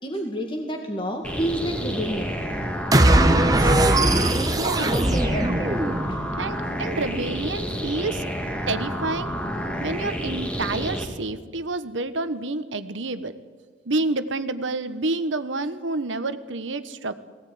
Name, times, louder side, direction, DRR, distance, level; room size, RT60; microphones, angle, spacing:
voice 1, 0.0-2.4 3.1-5.7 6.1-6.2, equal, 25° left, 2 dB, 2.0 m, -30 dB
sound 1, 1.2-11.1, equal, 5° left, 2.3 m, -29 dB
sound 2, 2.9-6.3, right 1 dB, 20° right, 1.0 m, -20 dB
voice 2, 4.6-4.9 6.4-8.2 8.7-9.3 9.8-13.3 13.8-17.1, right 2 dB, 80° right, 11 dB, 1.2 m, -28 dB
20.5 x 17.0 x 9.4 m, 1.5 s
head